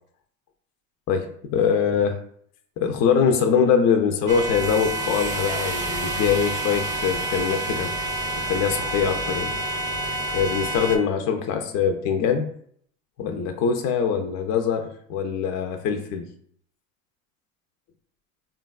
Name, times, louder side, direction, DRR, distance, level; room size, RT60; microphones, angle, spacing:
voice 1, 1.5-2.2 2.8-7.9 8.4-9.6 10.3-12.5 13.2-16.3, left 6 dB, 40° left, 6 dB, 0.4 m, -23 dB
sound 1, 4.3-11.0, right 1 dB, 20° right, 0.4 m, -28 dB
3.3 x 2.3 x 2.3 m, 0.62 s
hypercardioid pair, 80°, 42 cm